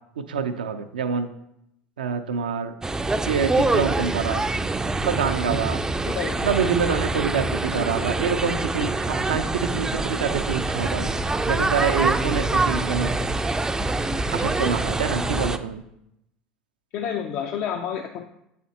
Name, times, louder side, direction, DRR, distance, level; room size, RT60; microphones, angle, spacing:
voice 1, 0.2-1.3 2.0-2.7 3.2-4.4 5.0-5.8 6.4-11.1 11.5-13.1 14.3-15.8, right 6 dB, 85° right, 8 dB, 0.5 m, -26 dB
sound 1, 2.8-15.6, right 2 dB, 15° right, 0.4 m, -25 dB
sound 2, 5.4-9.0 9.3-13.3, left 3 dB, 80° left, 0.8 m, -42 dB
voice 2, 6.1-6.7 16.9-18.3, left 8 dB, 55° left, 4 dB, 0.5 m, -30 dB
8.2 x 4.2 x 2.8 m, 0.81 s
hypercardioid pair, 75°, 5 cm